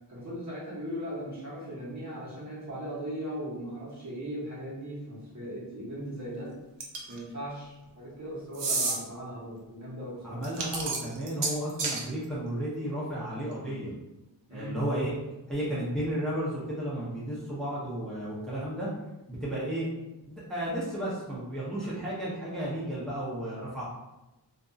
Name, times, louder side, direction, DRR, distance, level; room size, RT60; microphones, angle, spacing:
voice 1, 0.1-6.5 7.1-10.4 14.5-14.8, equal, 40° right, -7 dB, 1.1 m, -38 dB
sound 1, 6.8-7.2 8.5-9.0 10.4-12.0, right 3 dB, 80° right, 0.6 m, -30 dB
voice 2, 10.2-13.9 14.5-15.1 15.5-18.9 19.3-19.9 20.3-23.8, right 1 dB, ahead, -8 dB, 0.7 m, -33 dB
2.7 x 2.5 x 2.3 m, 0.99 s
wide cardioid pair, 85°, 43 cm